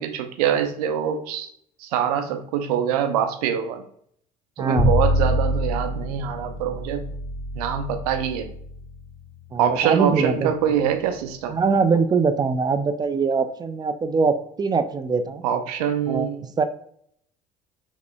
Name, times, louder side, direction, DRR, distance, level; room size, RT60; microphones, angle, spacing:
voice 1, 0.0-1.5 1.8-3.8 4.6-7.1 7.5-8.5 9.6-11.5 15.4-16.4, right 9 dB, 80° right, 7 dB, 0.5 m, -24 dB
voice 2, 4.6-4.9 9.5-10.8 11.5-15.4 16.1-16.6, right 4 dB, 20° right, 10 dB, 0.3 m, -23 dB
Bowed string instrument, 4.8-10.9, left 1 dB, 55° left, 1.1 m, -26 dB
3.6 x 3.0 x 2.3 m, 0.66 s
hypercardioid pair, 65°, 19 cm